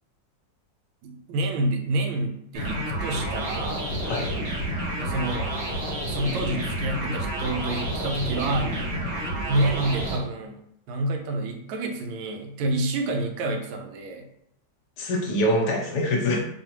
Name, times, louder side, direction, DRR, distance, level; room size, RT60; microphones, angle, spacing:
voice 1, 1.0-4.0 5.0-5.5 6.1-8.8 9.5-10.6 10.9-14.3, right 2 dB, 85° right, 4 dB, 1.4 m, -28 dB
sound 1, 2.5-10.2, right 1 dB, 45° right, 0.9 m, -29 dB
voice 2, 4.0-4.4 15.0-16.4, left 1 dB, 65° left, 0 dB, 1.3 m, -24 dB
4.8 x 2.5 x 2.9 m, 0.75 s
omnidirectional pair, 2.2 m